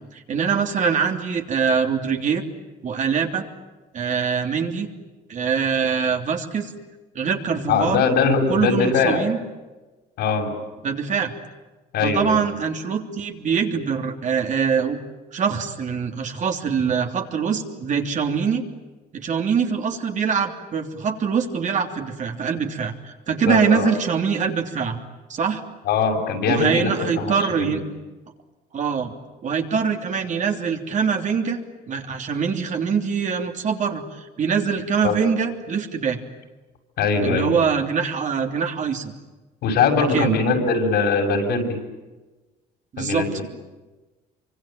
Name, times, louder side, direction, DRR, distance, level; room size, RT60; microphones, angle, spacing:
voice 1, 0.1-2.4 2.8-3.5 3.9-4.9 5.3-6.7 7.1-8.0 8.5-9.4 10.8-11.3 12.0-15.0 15.3-18.6 19.1-25.0 25.3-25.6 26.5-27.8 28.7-29.1 29.4-31.6 31.9-36.2 37.2-39.1 40.0-40.4 42.9-43.2, right 6 dB, 45° right, 4 dB, 3.3 m, -23 dB
voice 2, 7.7-9.2 10.2-10.5 11.9-12.4 23.5-23.9 25.8-27.7 35.0-35.2 37.0-37.5 39.6-41.7 43.0-43.4, left 4 dB, 75° left, 2 dB, 6.6 m, -21 dB
26.5 x 25.0 x 9.0 m, 1.2 s
cardioid pair, 110°, 17 cm